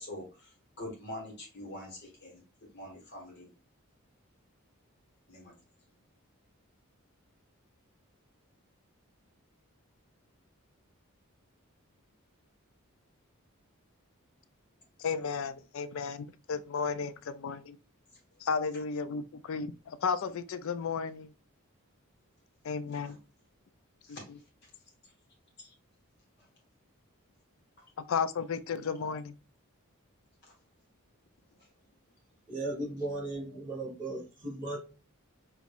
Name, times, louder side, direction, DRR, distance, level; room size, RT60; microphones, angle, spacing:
voice 1, 0.0-2.4 2.7-3.5 5.3-5.5 22.9-23.2 24.0-24.2 24.6-24.7 25.6-25.7 26.4-26.5 29.0-29.1 30.4-30.5, left 1 dB, 50° left, 1.8 m, -45 dB
voice 2, 15.0-17.8 18.4-21.3 22.6-23.2 28.0-29.3, left 5 dB, 65° left, 0.4 m, -33 dB
voice 3, 32.5-34.8, right 2 dB, 35° right, 1.9 m, -36 dB
5.0 x 3.0 x 2.5 m
head